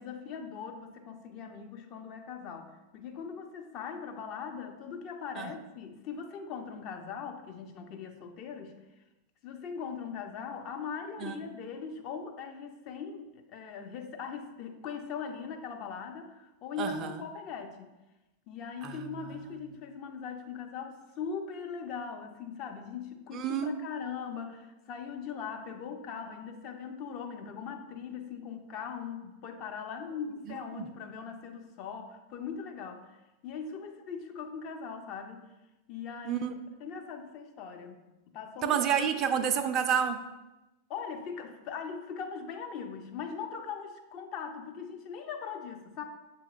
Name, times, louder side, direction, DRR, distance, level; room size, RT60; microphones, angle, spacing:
voice 1, 0.0-8.8 9.4-17.9 18.5-35.4 35.9-36.4 36.8-38.0 38.3-38.8 40.9-46.0, left 6 dB, 40° left, 4 dB, 0.5 m, -40 dB
voice 2, 16.8-17.1 18.8-19.4 23.3-23.7 30.8-30.9 36.3-36.6 38.6-40.2, right 8 dB, 35° right, 9 dB, 0.4 m, -29 dB
7.0 x 2.9 x 2.3 m, 1.0 s
figure-of-eight pair, 90°, 0 cm